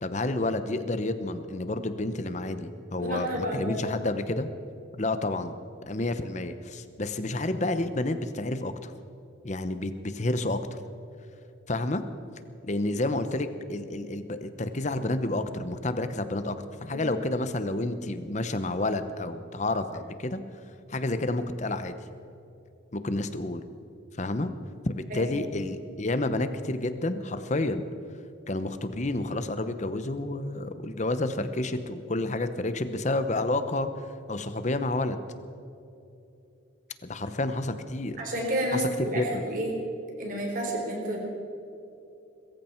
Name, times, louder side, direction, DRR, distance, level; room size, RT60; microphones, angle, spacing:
voice 1, 0.0-4.5 5.0-5.5 5.9-8.9 9.4-10.6 11.7-12.0 12.6-16.6 16.8-20.4 20.9-22.0 22.9-23.6 24.2-24.5 24.8-27.8 28.5-33.9 34.3-35.2 37.0-38.2 38.7-39.4, left 2 dB, 35° left, 10 dB, 0.9 m, -30 dB
voice 2, 3.0-3.8 16.9-17.0 25.1-25.3 38.2-39.8 40.2-41.2, right 1 dB, 45° right, 1 dB, 3.7 m, -30 dB
22.0 x 14.5 x 4.5 m, 2.8 s
head